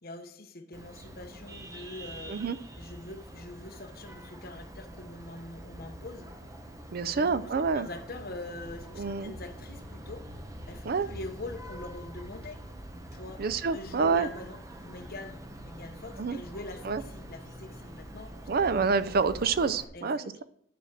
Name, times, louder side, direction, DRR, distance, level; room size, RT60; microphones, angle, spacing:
voice 1, 0.0-2.4 2.8-6.3 7.1-10.3 10.6-12.6 13.1-13.4 13.7-18.4 19.9-20.4, left 2 dB, 55° left, 6 dB, 1.1 m, -44 dB
Vehicle horn car horn honking, 0.7-19.8, equal, 20° right, 0.9 m, -45 dB
voice 2, 6.9-7.9 9.0-9.3 10.8-11.1 13.4-14.3 16.2-16.4 16.8-17.0 18.5-20.4, right 5 dB, 55° right, 15 dB, 0.5 m, -27 dB
10.0 x 6.0 x 4.9 m, 0.68 s
head